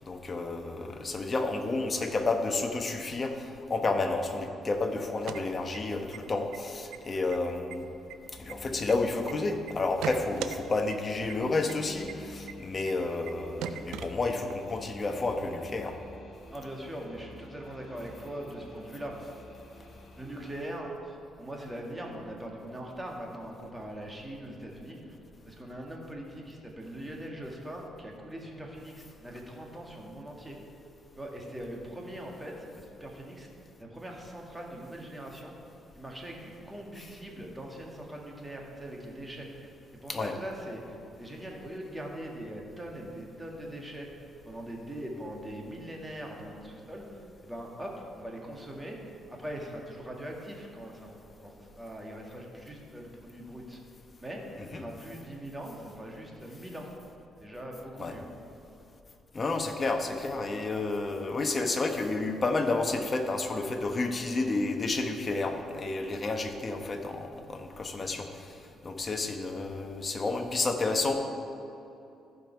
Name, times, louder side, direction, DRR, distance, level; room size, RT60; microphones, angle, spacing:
voice 1, 0.0-7.8 8.4-15.9 40.1-40.3 54.6-54.8 58.0-58.2 59.3-68.3 68.8-71.1, left 3 dB, 35° left, 5 dB, 1.0 m, -30 dB
sound 1, 5.1-6.2 6.5-6.6 6.9-7.4 7.7-9.3 9.7-10.6 10.9-11.0 11.3-11.4 11.7-11.8 12.1-12.2 12.5-12.6 12.9-13.0 13.3-13.4 13.6-14.6, right 10 dB, 90° right, 0.4 m, -38 dB
sound 2, 8.3-20.6, left 2 dB, 60° left, 2.5 m, -50 dB
voice 2, 16.5-19.3 20.2-25.1 25.4-30.6 31.2-33.5 33.8-35.5 35.9-53.8 54.2-54.4 54.7-56.9 57.4-58.2, right 1 dB, 15° right, -1 dB, 1.8 m, -41 dB
14.5 x 5.3 x 4.6 m, 2.7 s
cardioid pair, 90°, 0 cm